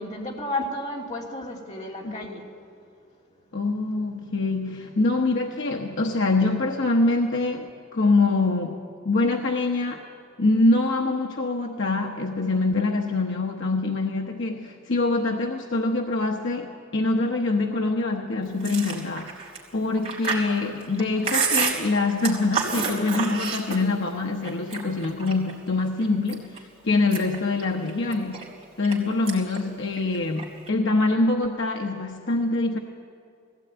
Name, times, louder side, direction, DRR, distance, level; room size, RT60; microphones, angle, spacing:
voice 1, 0.0-2.5 3.4-3.5, left 1 dB, 35° left, -2 dB, 2.9 m, -32 dB
voice 2, 3.5-10.0 10.4-28.5 28.8-32.8, left 2 dB, 60° left, 2 dB, 1.0 m, -24 dB
Chewing mastication, 18.6-24.1 24.4-25.5 26.0-26.6 26.9-28.9 29.3-29.6 29.9-30.7, right 5 dB, 30° right, 3.9 m, -29 dB
20.0 x 16.0 x 8.9 m, 2.5 s
head